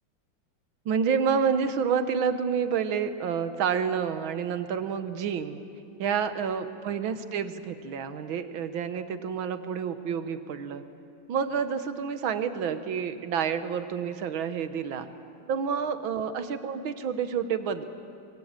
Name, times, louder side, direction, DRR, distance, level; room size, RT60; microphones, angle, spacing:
voice 1, 0.9-5.6 6.0-10.8 11.3-15.1 15.5-17.8, right 7 dB, 85° right, 10 dB, 1.9 m, -29 dB
25.0 x 21.5 x 8.8 m, 2.6 s
omnidirectional pair, 2.1 m